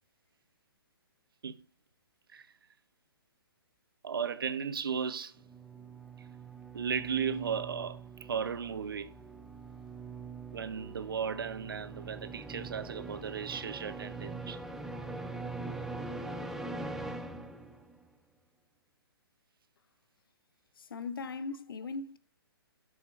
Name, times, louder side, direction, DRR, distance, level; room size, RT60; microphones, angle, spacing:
voice 1, 4.0-5.4 6.7-8.0 8.3-9.1 10.5-14.6, right 7 dB, 65° right, 0.9 m, -35 dB
sound 1, 5.4-18.0, right 3 dB, 5° right, 0.6 m, -43 dB
voice 2, 20.8-22.2, left 4 dB, 65° left, 0.7 m, -39 dB
8.0 x 7.1 x 3.2 m
figure-of-eight pair, 130°, 13 cm